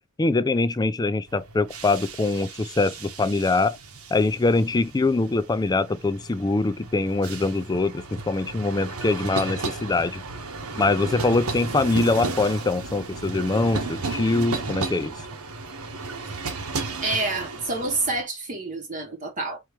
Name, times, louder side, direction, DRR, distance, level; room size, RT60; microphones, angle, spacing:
voice 1, 0.2-3.8 4.1-10.2 10.8-15.1, left 3 dB, 20° left, 0.4 m, -23 dB
sound 1, 1.3-18.2, right 3 dB, 75° right, 1.1 m, -34 dB
voice 2, 17.0-19.6, right 2 dB, 35° right, 1.0 m, -28 dB
4.7 x 3.0 x 3.2 m
head